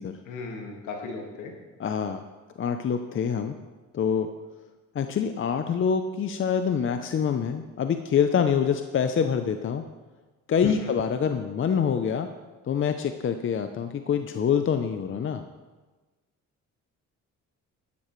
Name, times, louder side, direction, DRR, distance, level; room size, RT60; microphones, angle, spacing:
voice 1, 0.3-1.5 10.6-10.7, left 4 dB, 90° left, 1 dB, 2.0 m, -36 dB
voice 2, 1.8-2.3 2.6-3.6 3.9-4.3 4.9-9.8 10.5-12.3 12.6-15.4, left 7 dB, 45° left, 8 dB, 0.6 m, -25 dB
12.5 x 11.0 x 3.2 m, 1.2 s
cardioid pair, 90°, 30 cm